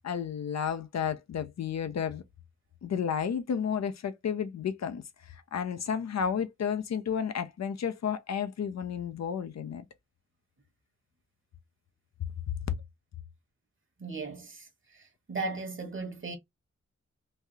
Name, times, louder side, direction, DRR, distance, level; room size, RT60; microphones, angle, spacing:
voice 1, 0.0-2.2 2.8-9.8 12.7-12.8, left 7 dB, 65° left, 0.5 m, -32 dB
voice 2, 14.0-14.7 15.3-16.4, right 3 dB, 45° right, 1.1 m, -36 dB
3.2 x 2.3 x 2.6 m
wide cardioid pair, 80°, 29 cm